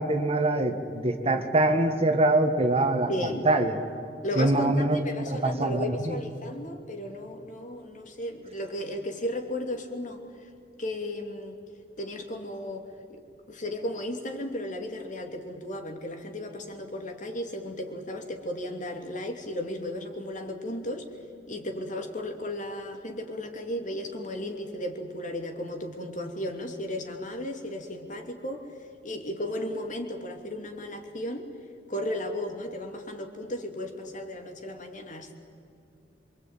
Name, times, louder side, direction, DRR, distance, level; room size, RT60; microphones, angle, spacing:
voice 1, 0.0-3.1 3.5-3.8 4.4-5.0 5.4-6.2, right 2 dB, 35° right, 6 dB, 1.9 m, -24 dB
voice 2, 3.1-3.5 4.2-10.2 10.8-11.6 12.0-13.2 13.5-21.1 21.5-28.7 29.0-31.5 31.9-35.4, left 1 dB, 45° left, 4 dB, 2.9 m, -35 dB
26.5 x 24.0 x 9.1 m, 2.5 s
head